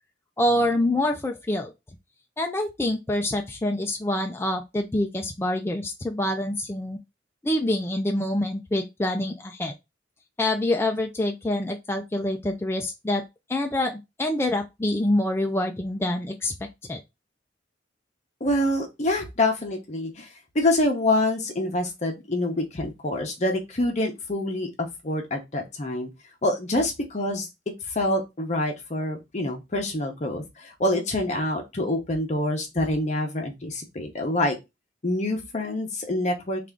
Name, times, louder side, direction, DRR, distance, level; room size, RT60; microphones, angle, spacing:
voice 1, 0.4-1.7 2.4-7.0 7.4-9.7 10.4-13.2 13.5-16.5 16.9-17.0, left 1 dB, 15° left, 0.4 m, -26 dB
voice 2, 18.4-20.3 20.5-26.1 26.4-27.5 27.9-34.6 35.0-36.7, left 1 dB, 40° left, 0.8 m, -26 dB
3.3 x 2.5 x 3.6 m
head